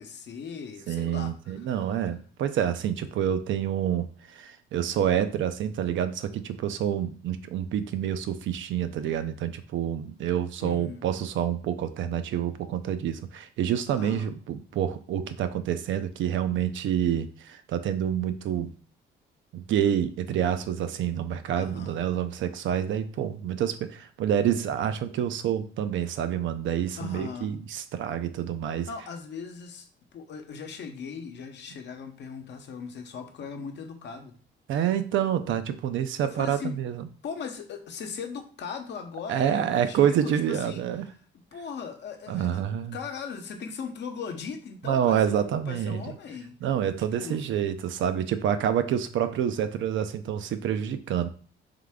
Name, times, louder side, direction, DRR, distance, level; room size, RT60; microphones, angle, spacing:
voice 1, 0.0-2.0 10.6-11.1 14.0-14.3 21.6-22.0 27.0-27.5 28.9-29.9 30.1-34.3 36.2-36.7 37.2-40.8 41.3-46.6 47.1-47.4, left 6 dB, 65° left, 5 dB, 0.8 m, -39 dB
voice 2, 0.9-4.1 4.3-18.7 19.5-28.9 34.7-37.1 39.3-41.1 42.3-43.0 44.8-46.1 46.6-51.3, right 9 dB, 75° right, 10 dB, 0.5 m, -27 dB
3.6 x 3.2 x 3.6 m, 0.42 s
cardioid pair, 90°, 20 cm